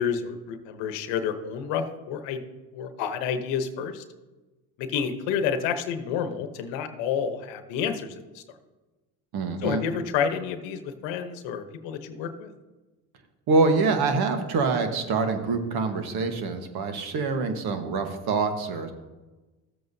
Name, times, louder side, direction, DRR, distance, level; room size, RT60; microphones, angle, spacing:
voice 1, 0.0-2.4 2.7-4.0 4.8-8.4 9.6-12.5, left 7 dB, 80° left, 8 dB, 1.0 m, -29 dB
voice 2, 9.3-9.8 13.5-18.9, right 4 dB, 60° right, 7 dB, 1.3 m, -25 dB
13.5 x 7.7 x 2.7 m, 1.2 s
supercardioid pair, 75°, 42 cm